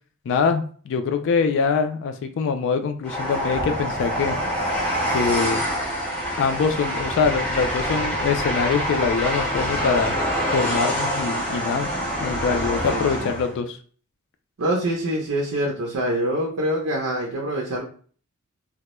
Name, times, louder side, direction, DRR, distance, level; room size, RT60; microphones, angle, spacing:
voice 1, 0.3-4.4 5.1-5.6 6.4-10.1 10.5-11.9 12.2-13.8, left 5 dB, 60° left, 7 dB, 0.3 m, -23 dB
Train, 3.0-13.5, equal, 5° left, 0.6 m, -26 dB
voice 2, 12.9-13.3 14.6-17.8, right 1 dB, 85° right, -2 dB, 0.6 m, -25 dB
2.2 x 2.0 x 2.9 m, 0.43 s
head